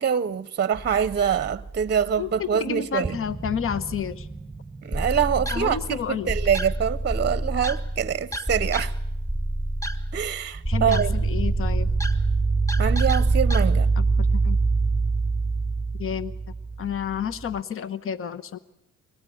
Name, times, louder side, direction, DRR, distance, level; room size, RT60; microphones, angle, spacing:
voice 1, 0.0-3.2 4.8-8.9 10.1-11.1 12.8-13.9, right 8 dB, 35° right, 0.8 m, -25 dB
sound 1, 0.8-2.2 2.6-2.7 3.0-7.4 10.5-17.6, right 4 dB, 5° right, 1.2 m, -25 dB
voice 2, 2.2-4.3 5.5-6.3 10.7-11.9 14.0-14.6 16.0-16.3 16.8-18.6, left 8 dB, 45° left, 1.0 m, -30 dB
sound 2, 4.9-13.6, right 1 dB, 10° left, 1.5 m, -29 dB
23.5 x 19.0 x 8.5 m
cardioid pair, 90°, 30 cm